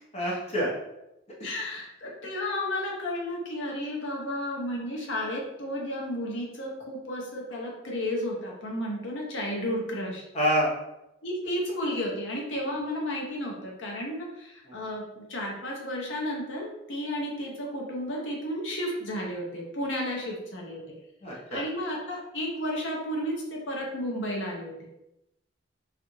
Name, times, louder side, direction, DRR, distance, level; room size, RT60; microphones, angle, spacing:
voice 1, 0.1-0.7 1.4-1.5 10.3-10.7 14.6-14.8 21.2-21.6, equal, 35° left, -5 dB, 0.7 m, -27 dB
voice 2, 1.4-10.2 11.2-21.0 21.5-24.9, left 1 dB, 80° left, -2 dB, 0.8 m, -33 dB
3.2 x 2.5 x 3.0 m, 0.88 s
head